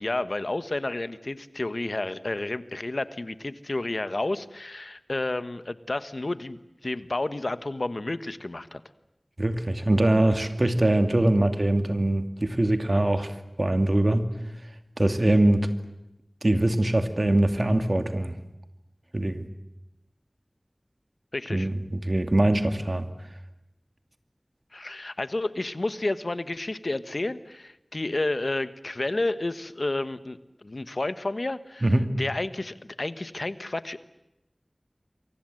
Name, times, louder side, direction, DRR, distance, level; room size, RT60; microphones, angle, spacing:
voice 1, 0.0-8.8 21.3-21.7 24.7-31.9 32.2-34.0, left 2 dB, 70° left, 13 dB, 1.3 m, -31 dB
voice 2, 9.4-13.3 13.6-14.3 15.0-15.7 16.4-18.3 19.1-19.5 21.5-23.1 31.8-32.1, right 1 dB, 55° right, 8 dB, 2.5 m, -23 dB
29.0 x 24.0 x 7.9 m, 0.92 s
wide cardioid pair, 45°, 0 cm